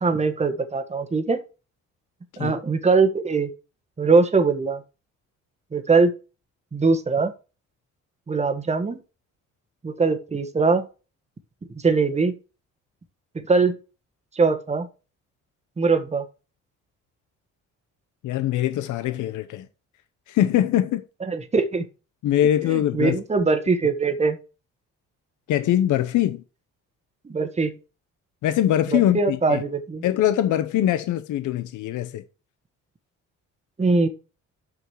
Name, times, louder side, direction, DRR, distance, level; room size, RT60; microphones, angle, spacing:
voice 1, 0.0-1.4 2.4-3.5 4.0-4.8 5.7-6.1 6.7-7.3 8.3-9.0 9.8-10.9 11.7-12.3 13.3-13.8 14.3-14.9 15.8-16.2 21.2-21.9 22.7-24.4 27.2-27.8 28.9-30.0 33.8-34.1, right 4 dB, 20° right, 1.2 m, -21 dB
voice 2, 18.2-19.7 20.3-21.0 22.2-23.2 25.5-26.4 28.4-29.6 30.0-32.2, left 12 dB, 80° left, 0.8 m, -22 dB
6.2 x 5.0 x 6.2 m
cardioid pair, 90°, 30 cm